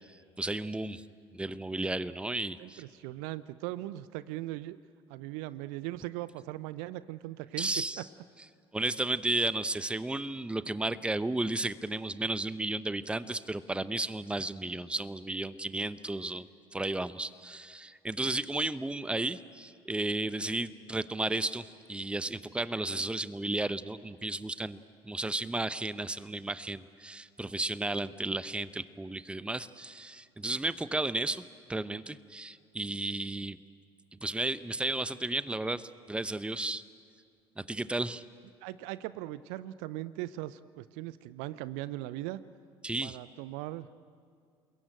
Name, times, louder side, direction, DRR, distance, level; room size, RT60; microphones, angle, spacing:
voice 1, 0.1-1.0 1.3-2.8 7.6-8.0 8.7-16.5 16.7-33.6 34.1-36.8 37.6-38.2 42.8-43.2, right 2 dB, 5° right, 15 dB, 0.9 m, -33 dB
voice 2, 2.6-4.8 5.1-7.7 8.0-8.1 38.6-42.4 43.0-43.9, right 16 dB, 60° right, 17 dB, 0.7 m, -39 dB
29.5 x 21.5 x 9.0 m, 2.2 s
figure-of-eight pair, 60°, 14 cm